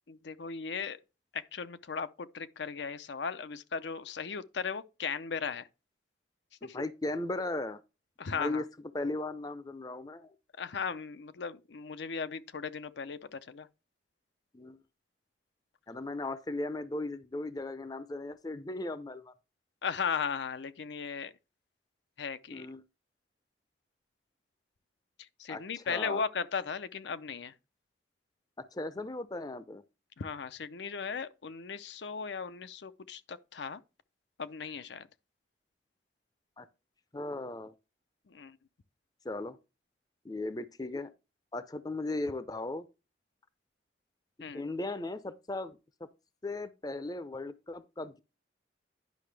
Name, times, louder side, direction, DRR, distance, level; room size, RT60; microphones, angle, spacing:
voice 1, 0.1-1.0 1.3-5.7 6.6-6.8 8.2-8.6 10.6-13.7 19.8-21.3 22.2-22.7 25.2-27.5 30.2-33.8 34.4-35.1 38.3-38.6 44.4-44.6, left 5 dB, 75° left, 0.6 m, -37 dB
voice 2, 6.6-7.8 8.3-8.6 8.9-10.3 14.5-14.8 15.9-19.3 22.5-22.8 25.5-26.2 28.6-29.8 36.6-36.7 37.1-37.7 39.2-39.6 40.2-41.1 41.5-42.9 44.5-46.1 46.4-48.2, left 2 dB, 20° left, 0.5 m, -37 dB
10.5 x 5.7 x 3.3 m
head